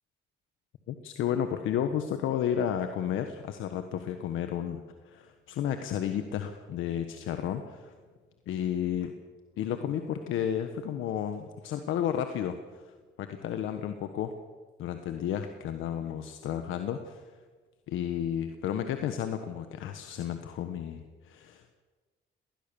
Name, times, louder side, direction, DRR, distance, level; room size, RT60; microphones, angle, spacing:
voice 1, 0.9-7.9 8.5-9.1 9.6-12.6 13.2-14.3 14.8-17.3 17.9-21.7, left 9 dB, 85° left, 7 dB, 1.3 m, -32 dB
20.0 x 19.0 x 7.0 m, 1.4 s
cardioid pair, 90°, 20 cm